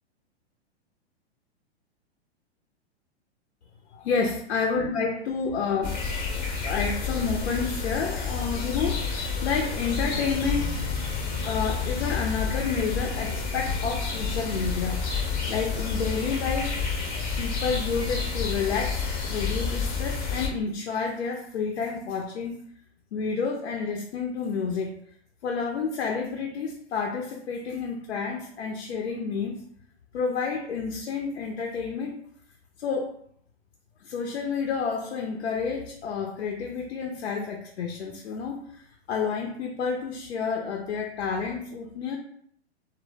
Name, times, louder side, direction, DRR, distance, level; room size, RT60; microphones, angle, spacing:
voice 1, 3.9-6.0 6.6-10.8 11.4-15.0 15.5-17.0 17.4-22.6 23.1-24.9 25.4-29.6 30.1-32.2 32.8-33.1 34.0-38.8 39.1-42.2, left 5 dB, 80° left, 1 dB, 0.5 m, -30 dB
sound 1, 5.8-20.5, left 5 dB, 30° left, 0.6 m, -29 dB
2.0 x 2.0 x 3.2 m, 0.65 s
hypercardioid pair, 115°, 33 cm